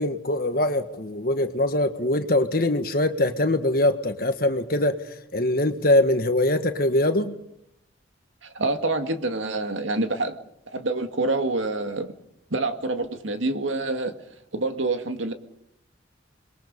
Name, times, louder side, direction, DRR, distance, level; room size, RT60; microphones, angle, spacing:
voice 1, 0.0-5.0 5.3-7.3, left 1 dB, 50° left, 7 dB, 1.6 m, -22 dB
voice 2, 8.4-10.4 10.7-12.1 12.5-14.1 14.5-15.3, right 2 dB, 85° right, 7 dB, 2.0 m, -26 dB
27.5 x 22.0 x 5.4 m, 0.78 s
head